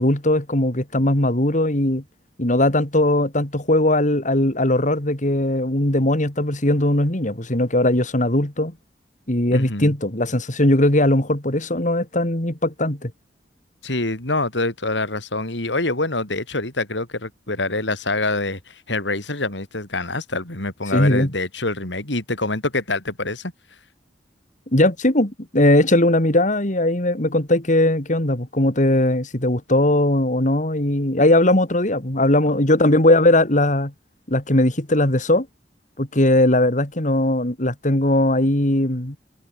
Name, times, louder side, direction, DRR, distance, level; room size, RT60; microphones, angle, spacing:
voice 1, 0.0-2.0 2.4-8.7 9.3-13.1 20.9-21.3 24.7-33.9 34.3-35.5 36.0-39.2, left 1 dB, 45° left, 3.6 m, -19 dB
voice 2, 9.5-9.9 13.8-23.5, left 2 dB, 85° left, 5.0 m, -25 dB
head